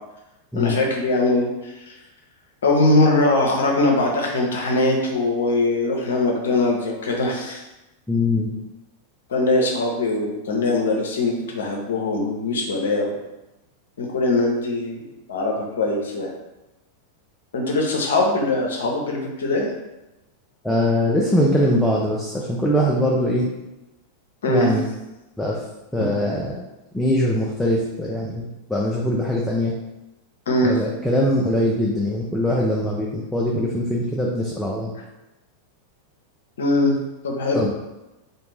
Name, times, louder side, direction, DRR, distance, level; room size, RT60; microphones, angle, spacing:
voice 1, 0.6-1.9 2.6-7.6 9.3-13.1 14.0-15.0 15.3-16.3 17.5-19.7 24.4-24.7 30.5-30.8 36.6-37.0 37.2-37.6, left 2 dB, 65° left, 0 dB, 0.5 m, -21 dB
voice 2, 8.1-8.5 20.6-23.5 24.5-24.8 25.4-25.6 25.9-26.6 26.9-29.7 30.6-34.9 37.5-37.7, left 1 dB, 5° left, -4 dB, 0.4 m, -22 dB
2.4 x 2.1 x 3.2 m, 1.0 s
figure-of-eight pair, 90°, 0 cm